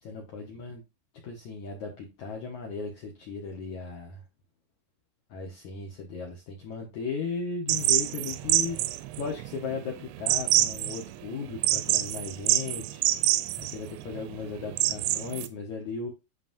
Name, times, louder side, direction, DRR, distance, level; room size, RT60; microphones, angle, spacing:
voice 1, 0.0-0.8 1.2-4.2 5.3-13.0 13.5-16.1, left 5 dB, 75° left, 1.7 m, -36 dB
sound 1, 7.7-15.5, right 15 dB, 85° right, 2.6 m, -27 dB
11.0 x 4.1 x 2.6 m
omnidirectional pair, 5.1 m